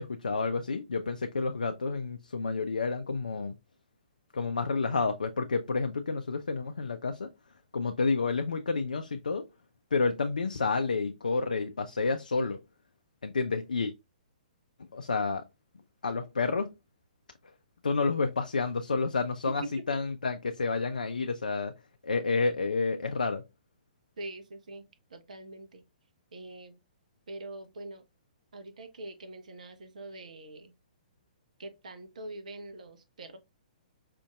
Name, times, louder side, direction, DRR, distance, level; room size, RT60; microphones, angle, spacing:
voice 1, 0.0-3.5 4.3-7.3 7.7-9.5 9.9-12.6 13.2-13.9 14.9-15.4 16.0-16.7 17.8-21.7 22.0-23.4, left 4 dB, 70° left, 0.4 m, -30 dB
voice 2, 24.2-24.8 25.1-25.8 26.3-26.8 27.3-28.1 28.5-30.7 31.6-33.4, right 2 dB, 60° right, 0.7 m, -43 dB
5.1 x 2.5 x 2.3 m
figure-of-eight pair, 120°, 5 cm